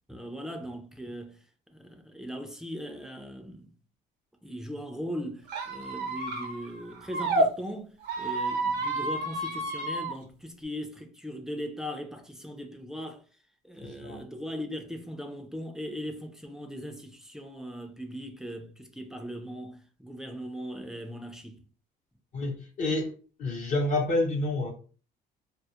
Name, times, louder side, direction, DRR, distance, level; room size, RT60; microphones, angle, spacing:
voice 1, 0.1-1.4 1.7-3.7 4.4-13.2 13.6-21.6, equal, 5° right, 0.4 m, -39 dB
Squeak, 5.5-7.5 8.0-10.1, right 2 dB, 85° right, 0.7 m, -30 dB
voice 2, 13.8-14.2 22.3-23.1 23.4-24.7, left 2 dB, 50° left, 0.7 m, -28 dB
2.2 x 2.0 x 2.7 m
cardioid pair, 110°, 17 cm